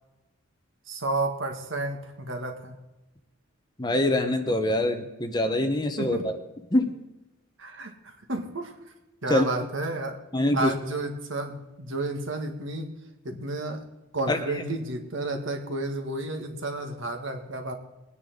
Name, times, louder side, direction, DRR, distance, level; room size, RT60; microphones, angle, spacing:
voice 1, 0.9-2.8 6.0-6.3 7.6-8.8 9.2-10.2 10.5-12.9 13.2-13.8 14.1-17.8, right 2 dB, 65° right, 4 dB, 2.0 m, -31 dB
voice 2, 3.8-6.3 6.7-7.0 9.3-9.5 10.3-10.7 14.3-14.6, left 1 dB, 20° left, 6 dB, 1.0 m, -24 dB
21.5 x 9.9 x 3.8 m, 1.0 s
head